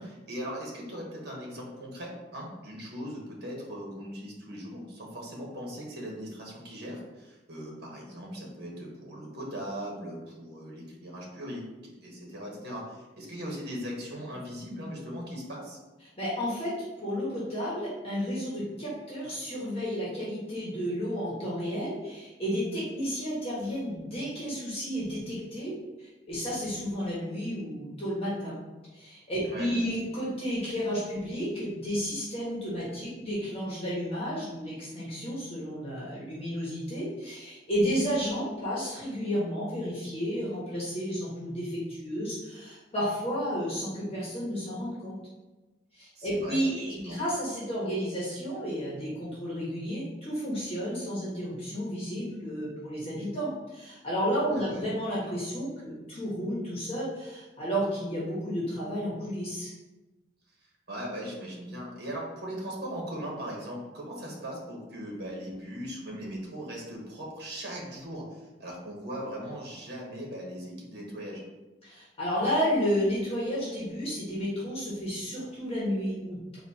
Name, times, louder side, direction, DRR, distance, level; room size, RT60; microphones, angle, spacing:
voice 1, 0.0-15.8 29.4-29.9 46.1-46.6 47.0-47.2 54.5-54.9 60.9-71.4, equal, 65° right, -2 dB, 1.2 m, -39 dB
voice 2, 16.2-28.6 28.9-45.2 45.9-59.7 71.8-76.6, equal, 35° left, -8 dB, 1.3 m, -32 dB
4.1 x 2.7 x 4.1 m, 1.1 s
head